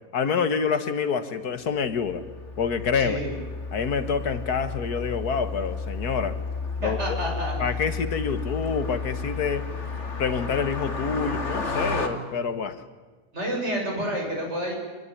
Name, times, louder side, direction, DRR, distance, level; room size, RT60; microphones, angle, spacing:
voice 1, 0.1-2.3 2.6-3.2 3.7-6.4 6.8-7.2 7.6-9.7 10.2-12.8, left 6 dB, 75° left, 11 dB, 1.9 m, -27 dB
Car passing by, 2.0-12.1, left 4 dB, 45° left, 2.7 m, -32 dB
voice 2, 3.0-3.3 6.8-7.5 13.3-14.8, equal, 45° right, 1 dB, 7.1 m, -29 dB
25.5 x 20.5 x 9.9 m, 1.3 s
omnidirectional pair, 1.7 m